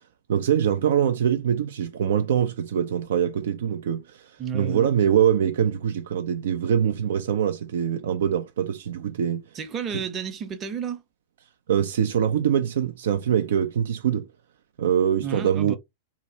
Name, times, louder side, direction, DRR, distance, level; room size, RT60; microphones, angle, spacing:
voice 1, 0.3-9.4 9.9-10.0 11.7-14.3 14.8-15.8, right 9 dB, 65° right, 0.4 m, -23 dB
voice 2, 4.4-4.9 9.6-11.0 15.2-15.8, right 7 dB, 30° right, 0.7 m, -31 dB
2.8 x 2.2 x 2.7 m
figure-of-eight pair, 100°, 0 cm